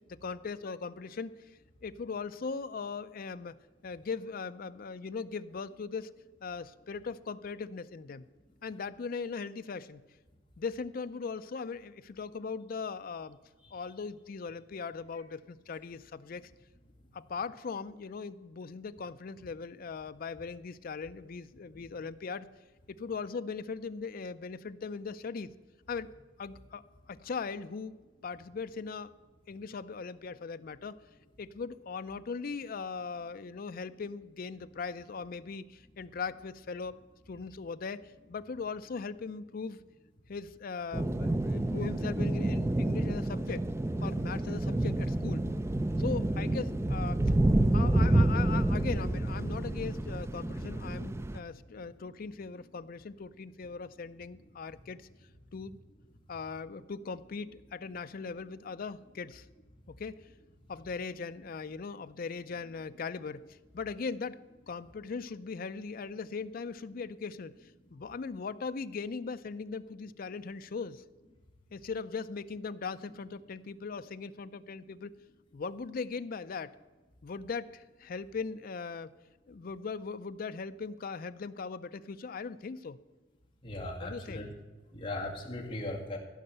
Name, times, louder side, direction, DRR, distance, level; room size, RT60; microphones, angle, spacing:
voice 1, 0.1-3.6 3.8-6.1 6.4-8.3 8.6-10.1 10.6-13.4 13.7-16.5 17.1-22.5 22.9-25.5 25.9-26.1 26.4-28.0 28.2-29.1 29.5-31.0 31.4-37.0 37.3-39.8 40.3-43.7 44.0-45.5 46.0-47.2 47.7-55.1 55.5-55.8 56.3-59.5 59.9-60.2 60.7-64.4 64.7-71.0 71.7-75.1 75.5-76.8 77.2-79.1 79.5-83.0 84.0-84.5, left 5 dB, 50° left, 12 dB, 0.4 m, -39 dB
sound 1, 40.9-51.4, right 1 dB, 15° right, 0.4 m, -29 dB
voice 2, 83.6-84.4 84.9-86.2, left 1 dB, 30° left, -2 dB, 2.2 m, -38 dB
15.0 x 5.5 x 7.8 m, 1.3 s
head